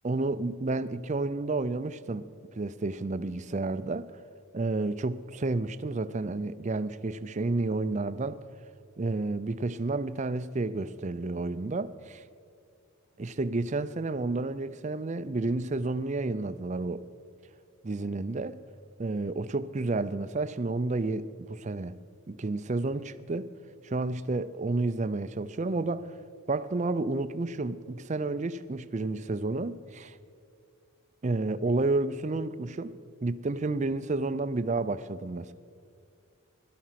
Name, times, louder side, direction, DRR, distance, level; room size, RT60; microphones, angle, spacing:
voice 1, 0.0-2.3 2.6-4.1 4.5-8.4 9.0-12.2 13.2-17.0 17.8-18.6 19.0-22.0 22.3-23.5 23.8-26.1 26.5-30.2 31.2-35.5, right 2 dB, 30° right, 0.4 m, -31 dB
17.5 x 12.5 x 5.8 m
head